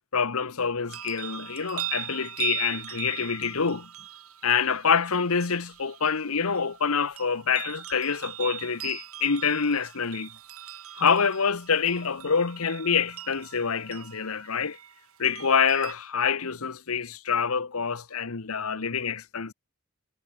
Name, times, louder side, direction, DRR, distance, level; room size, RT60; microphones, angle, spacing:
voice 1, 0.1-3.9 4.4-10.3 10.9-14.8 15.2-19.5, left 6 dB, 75° left, 1.1 m, -26 dB
sound 1, 0.9-15.9, right 13 dB, 75° right, 3.8 m, -40 dB
head